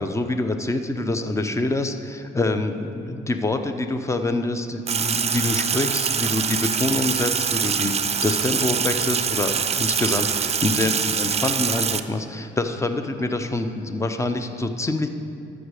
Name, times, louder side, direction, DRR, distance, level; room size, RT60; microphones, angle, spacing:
voice 1, 0.0-8.0 8.2-15.1, left 2 dB, 15° left, 8 dB, 0.7 m, -26 dB
Sink (filling or washing), 4.9-12.0, right 7 dB, 30° right, 0.4 m, -24 dB
13.0 x 6.3 x 4.9 m, 2.5 s
cardioid pair, 90°, 20 cm